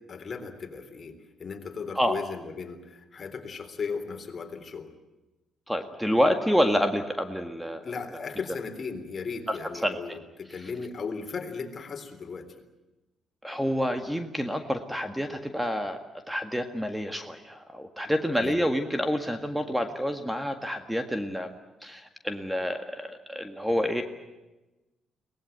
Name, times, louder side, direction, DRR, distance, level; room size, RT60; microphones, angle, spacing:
voice 1, 0.1-4.9 7.8-12.5 18.3-18.6, left 5 dB, 45° left, 5 dB, 3.6 m, -36 dB
voice 2, 5.7-7.8 9.5-10.0 13.4-16.0 16.3-24.0, equal, 5° right, 6 dB, 1.7 m, -28 dB
23.0 x 19.0 x 9.3 m, 1.1 s
cardioid pair, 90°, 0 cm